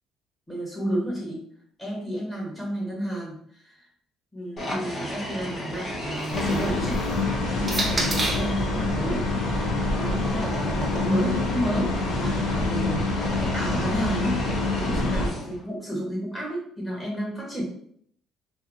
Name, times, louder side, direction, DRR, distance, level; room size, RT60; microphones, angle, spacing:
voice 1, 0.5-1.4 1.8-3.8 4.3-7.1 7.7-14.4 14.7-17.6, right 1 dB, 10° left, -4 dB, 1.4 m, -31 dB
sound 1, 4.6-8.3 9.3-15.7, equal, 35° left, 0.9 m, -35 dB
sound 2, 6.1-8.6 9.5-11.7, right 2 dB, 20° right, 0.5 m, -33 dB
sound 3, 6.3-15.3, left 2 dB, 75° left, 0.6 m, -26 dB
2.7 x 2.5 x 2.6 m, 0.64 s
cardioid pair, 130°, 0 cm